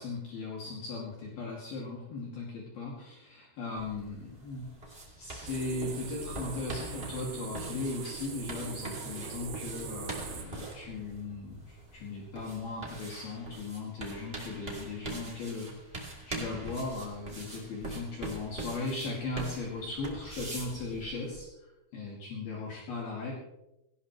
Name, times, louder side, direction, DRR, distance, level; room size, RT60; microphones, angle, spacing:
voice 1, 0.0-4.7 5.2-21.5 21.9-23.3, left 3 dB, 55° left, -3 dB, 3.9 m, -38 dB
sound 1, 3.7-21.4, right 2 dB, 25° right, 1.3 m, -43 dB
sound 2, 5.5-10.5, right 6 dB, 70° right, 4.0 m, -42 dB
17.5 x 17.5 x 3.2 m, 0.92 s
omnidirectional pair, 5.7 m